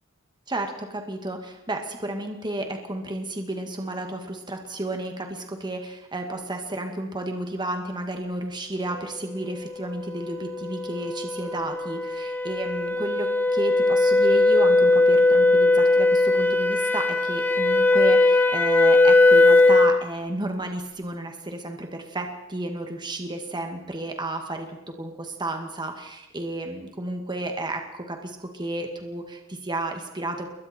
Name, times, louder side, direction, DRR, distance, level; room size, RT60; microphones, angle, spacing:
voice 1, 0.5-30.5, right 1 dB, 20° right, 4 dB, 2.1 m, -32 dB
sound 1, 10.1-20.0, left 2 dB, 10° left, 1.3 m, -19 dB
28.5 x 22.5 x 4.5 m, 0.92 s
head